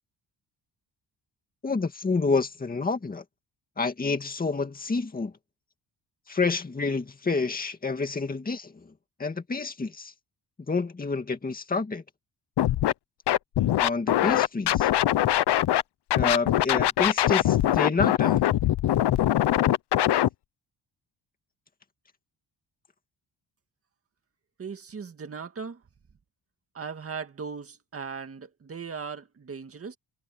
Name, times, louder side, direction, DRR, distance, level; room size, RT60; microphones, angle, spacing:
voice 1, 1.6-3.2 3.8-5.3 6.3-8.9 9.2-10.1 10.7-12.0 13.8-14.9 16.2-18.4, left 4 dB, 20° left, 2.2 m, -28 dB
Scratching (performance technique), 12.6-12.9 13.3-15.8 16.1-20.3, left 13 dB, 65° left, 0.8 m, -22 dB
voice 2, 24.6-25.8 26.7-30.0, right 5 dB, 30° right, 2.0 m, -38 dB
wide cardioid pair, 165°, 43 cm